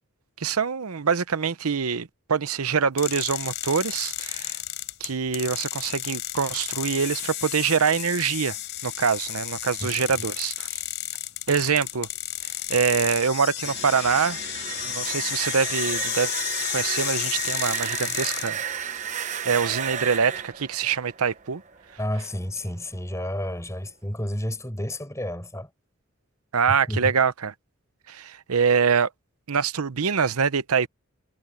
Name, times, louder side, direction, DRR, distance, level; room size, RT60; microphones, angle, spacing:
voice 1, 0.4-4.6 5.0-8.6 8.8-10.8 11.5-12.1 12.7-14.4 14.8-16.3 16.7-18.6 19.1-21.6 26.5-27.5 28.1-29.1 29.5-30.9, right 6 dB, 85° right, 0.8 m, -24 dB
sound 1, 3.0-18.5, left 14 dB, 50° left, 6.3 m, -32 dB
sound 2, 13.5-22.3, right 8 dB, 35° right, 0.9 m, -33 dB
voice 2, 14.7-15.1 18.0-18.1 22.0-25.7 26.9-27.1, left 1 dB, 15° left, 6.8 m, -31 dB
head